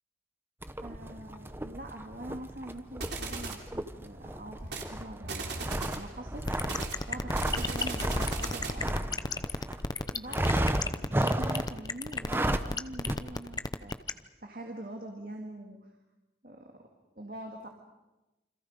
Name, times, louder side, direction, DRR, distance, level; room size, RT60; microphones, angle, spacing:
sound 1, 0.6-9.8 10.3-11.8 12.2-12.8 13.1-13.2, right 1 dB, 15° right, 0.8 m, -33 dB
voice 1, 0.8-5.6 5.9-6.5 7.1-9.5 10.0-15.9 16.4-16.9 17.2-17.7, right 1 dB, 50° right, 2 dB, 2.3 m, -44 dB
sound 2, 3.0-3.7 4.6-4.9 5.2-6.1 6.7-8.9, right 3 dB, 80° right, 3.3 m, -37 dB
sound 3, 6.5-14.1, left 3 dB, 20° left, 0.7 m, -32 dB
29.0 x 26.0 x 5.2 m, 1.0 s
head